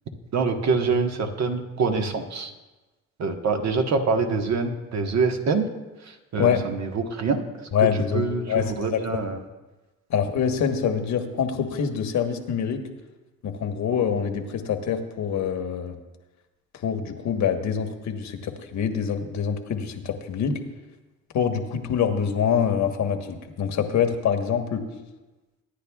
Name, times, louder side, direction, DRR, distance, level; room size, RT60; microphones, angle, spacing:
voice 1, 0.3-2.5 3.2-5.7 6.0-9.4, right 4 dB, 60° right, 4 dB, 1.4 m, -25 dB
voice 2, 7.7-9.2 10.1-12.8 13.4-16.0 16.8-20.6 21.3-24.8, left 7 dB, 70° left, 5 dB, 1.3 m, -25 dB
23.5 x 10.0 x 2.4 m, 1.1 s
cardioid pair, 90°, 30 cm